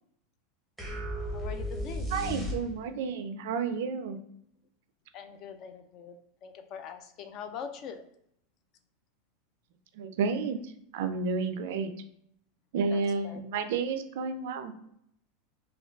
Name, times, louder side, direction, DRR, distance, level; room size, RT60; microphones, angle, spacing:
sound 1, 0.8-3.1, equal, ahead, 0.7 m, -35 dB
voice 1, 1.3-2.1 5.1-6.2 6.4-8.0 12.9-13.6, left 7 dB, 40° left, 8 dB, 0.3 m, -43 dB
voice 2, 2.1-4.2 10.0-10.6 10.9-11.9 12.7-14.7, right 5 dB, 70° right, 8 dB, 0.3 m, -31 dB
3.6 x 2.3 x 2.2 m, 0.72 s
supercardioid pair, 155°, 0 cm